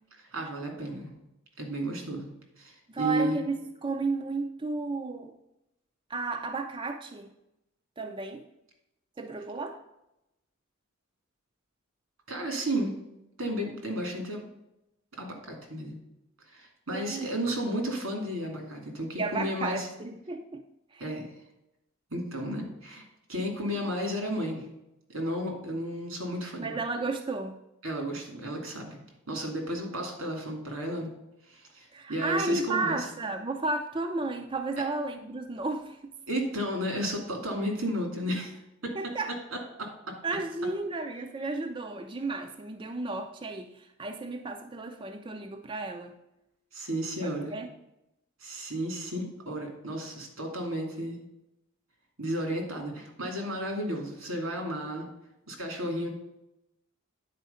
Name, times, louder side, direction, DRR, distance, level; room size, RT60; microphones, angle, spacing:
voice 1, 0.2-1.1 1.6-2.3 2.6-3.4 12.3-12.9 13.4-14.5 15.2-16.0 16.5-19.9 21.0-21.3 22.1-24.6 25.1-26.8 27.8-29.0 29.3-31.1 31.5-33.1 36.3-38.5 39.8-39.9 46.7-47.6 48.4-51.2 52.2-55.1 55.5-56.1, equal, 90° right, 2 dB, 2.6 m, -33 dB
voice 2, 2.9-5.3 6.1-7.3 8.0-8.4 9.2-9.8 16.9-17.3 19.2-20.6 20.9-21.0 26.6-27.6 31.9-36.0 38.9-39.3 40.2-46.1 47.2-47.7, right 3 dB, 25° right, 5 dB, 0.5 m, -33 dB
9.4 x 4.6 x 5.5 m, 0.88 s
head